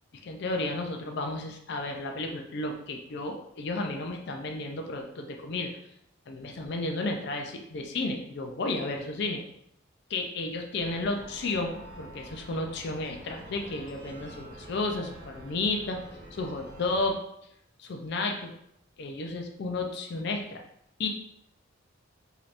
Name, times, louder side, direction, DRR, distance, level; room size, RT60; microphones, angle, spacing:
voice 1, 0.2-5.7 6.3-9.4 10.1-16.0 16.3-17.2 17.8-18.5 19.0-20.6 21.0-21.1, left 2 dB, 50° left, 3 dB, 0.4 m, -32 dB
sound 1, 10.8-17.1, right 1 dB, 70° right, 1.2 m, -47 dB
3.2 x 2.8 x 2.4 m, 0.75 s
head